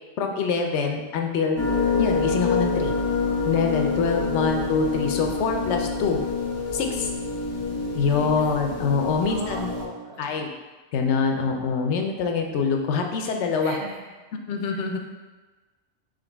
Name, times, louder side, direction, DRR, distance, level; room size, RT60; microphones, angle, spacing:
voice 1, 0.2-1.6 2.0-2.9 3.5-6.2 6.7-7.1 7.9-9.7 10.2-10.5 10.9-13.8 14.5-15.0, left 5 dB, 85° left, 3 dB, 0.9 m, -25 dB
sound 1, 1.6-9.8, left 4 dB, 20° left, 0.4 m, -27 dB
voice 2, 9.3-10.4 11.9-12.2 13.6-14.1 14.7-14.8, right 3 dB, 70° right, 0 dB, 0.9 m, -39 dB
3.9 x 3.2 x 3.3 m, 1.3 s
omnidirectional pair, 1.1 m